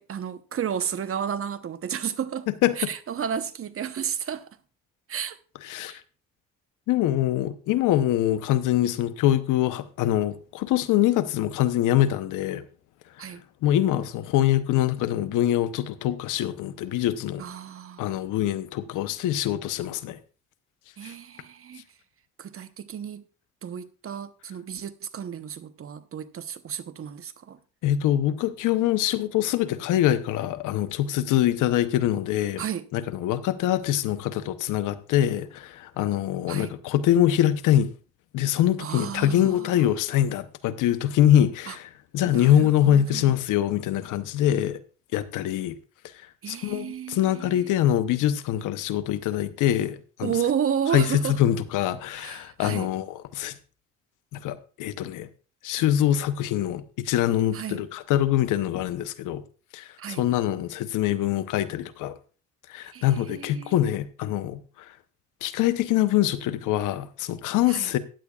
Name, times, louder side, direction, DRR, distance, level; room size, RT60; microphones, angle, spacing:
voice 1, 0.0-2.5 2.8-4.5 5.1-5.4 5.8-6.0 13.2-13.4 17.4-18.0 21.0-21.8 22.4-23.2 23.6-27.6 32.6-32.9 36.5-36.7 38.8-39.9 41.7-41.8 42.2-43.4 46.4-47.7 50.2-51.4 52.1-52.9 57.5-57.8 60.0-60.3 62.9-63.7 67.7-67.9, right 8 dB, 45° right, 0.9 m, -32 dB
voice 2, 2.5-2.9 5.6-6.0 6.9-12.6 13.6-17.4 18.0-20.2 21.0-21.1 27.8-32.6 32.9-37.9 38.3-44.8 45.1-45.8 46.5-50.3 50.9-53.5 54.4-55.3 55.6-59.4 59.7-62.2 62.7-64.9 65.4-68.0, left 12 dB, 90° left, 0.8 m, -24 dB
15.0 x 10.0 x 2.4 m
cardioid pair, 90°, 30 cm